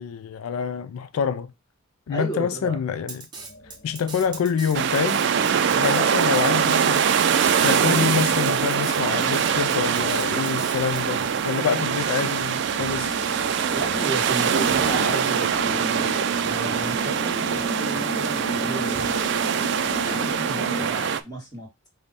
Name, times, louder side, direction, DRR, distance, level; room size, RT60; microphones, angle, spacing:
voice 1, 0.0-1.5 2.1-3.3 3.8-5.2 5.8-7.1 7.6-13.2, left 7 dB, 85° left, 0.3 m, -26 dB
voice 2, 2.1-2.8 13.7-19.1 20.0-21.9, right 2 dB, 20° left, 1.7 m, -34 dB
Drum kit, 3.1-11.0, right 4 dB, 20° right, 0.7 m, -39 dB
sound 1, 3.4-20.9, right 1 dB, 50° left, 0.7 m, -36 dB
sound 2, 4.7-21.2, right 7 dB, 55° right, 0.3 m, -23 dB
5.2 x 2.2 x 4.0 m
head